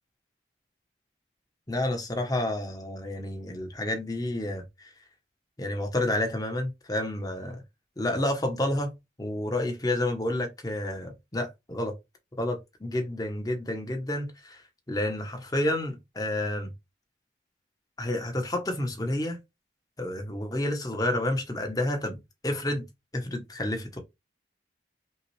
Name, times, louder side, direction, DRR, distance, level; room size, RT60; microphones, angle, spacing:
voice 1, 1.7-4.9 5.6-7.6 8.0-8.9 9.2-11.9 12.4-14.6 14.9-16.7 18.0-19.4 20.0-22.8 23.1-24.0, left 1 dB, 20° left, 0.9 m, -30 dB
5.5 x 2.3 x 3.2 m
head